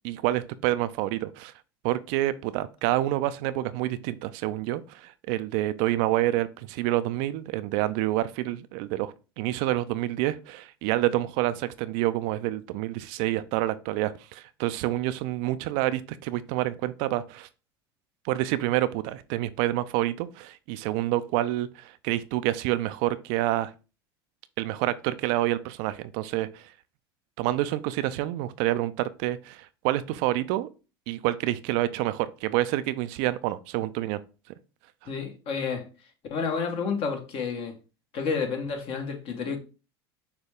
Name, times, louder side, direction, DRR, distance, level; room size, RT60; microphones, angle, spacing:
voice 1, 0.0-1.5 1.8-17.5 18.2-23.7 24.6-26.7 27.4-30.7 31.1-34.2, right 15 dB, 60° right, 0.4 m, -28 dB
voice 2, 35.0-35.9 36.3-37.8 38.1-39.6, left 5 dB, 50° left, 1.3 m, -30 dB
6.6 x 2.3 x 3.6 m
hypercardioid pair, 90°, 13 cm